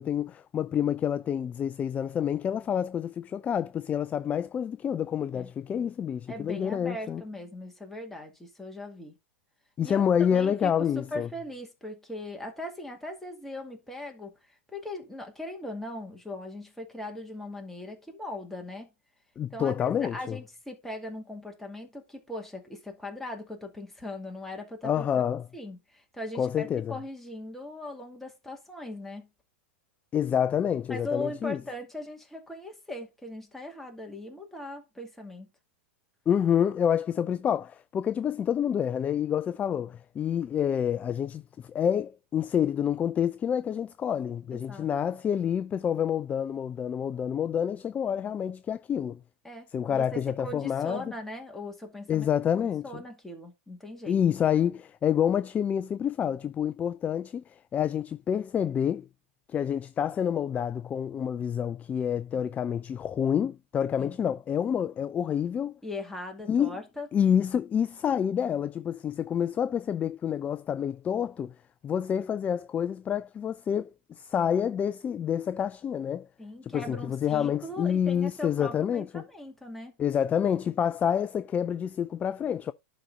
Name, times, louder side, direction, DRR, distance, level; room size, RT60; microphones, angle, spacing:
voice 1, 0.0-7.2 9.8-11.3 19.4-20.4 24.8-25.4 26.4-26.9 30.1-31.6 36.3-49.2 49.7-51.0 52.1-53.0 54.1-59.1 59.5-65.8 66.5-66.8 67.1-71.5 71.8-76.3 76.6-79.2 80.0-82.7, left 8 dB, 20° left, 0.3 m, -28 dB
voice 2, 6.3-9.2 9.8-18.9 19.5-25.1 25.5-29.3 30.9-35.5 44.5-44.9 49.4-52.3 52.8-54.2 64.0-64.2 65.8-67.1 76.4-79.9, left 1 dB, 5° left, 2.2 m, -39 dB
11.5 x 4.1 x 3.9 m
hypercardioid pair, 105°, 7 cm